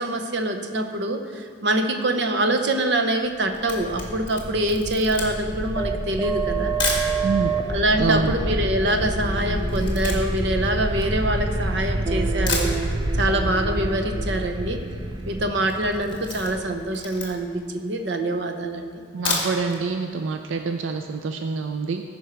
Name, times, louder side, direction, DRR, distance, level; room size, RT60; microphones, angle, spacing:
voice 1, 0.0-6.7 7.7-12.7 13.2-14.8 15.3-18.9, right 1 dB, 65° right, 5 dB, 0.8 m, -24 dB
Camera, 3.5-7.1 7.8-7.9 8.1-11.8 12.2-12.3 12.5-13.3 13.6-13.7 14.0-14.1 14.2-14.7 15.0-15.2 15.6-17.6 18.1-18.2 19.0-19.8 20.2-20.3 20.6-20.7, left 3 dB, 25° left, 1.6 m, -31 dB
sound 1, 3.7-17.4, right 2 dB, 20° right, 0.5 m, -27 dB
sound 2, 7.0-12.4, left 2 dB, ahead, 1.8 m, -41 dB
voice 2, 8.0-8.3 19.1-22.0, right 4 dB, 90° right, 6 dB, 0.5 m, -26 dB
15.5 x 5.4 x 4.5 m, 2.3 s
head